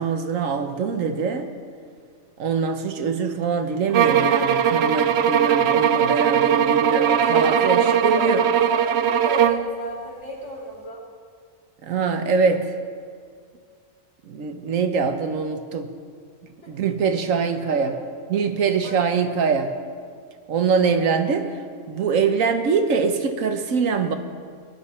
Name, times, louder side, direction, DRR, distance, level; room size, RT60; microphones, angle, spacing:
voice 1, 0.0-1.5 2.4-8.4 11.8-12.7 14.3-15.9 16.7-17.9 18.3-19.7 20.5-21.5 21.9-24.2, right 5 dB, 80° right, 7 dB, 1.3 m, -23 dB
sound 1, 3.9-9.7, right 8 dB, 65° right, 0.7 m, -19 dB
voice 2, 6.9-7.9 8.1-11.0 16.6-16.7 17.7-17.8 18.8-19.2 20.7-21.1, left 1 dB, 60° left, -5 dB, 3.5 m, -34 dB
19.5 x 11.0 x 4.3 m, 2.1 s
omnidirectional pair, 1.4 m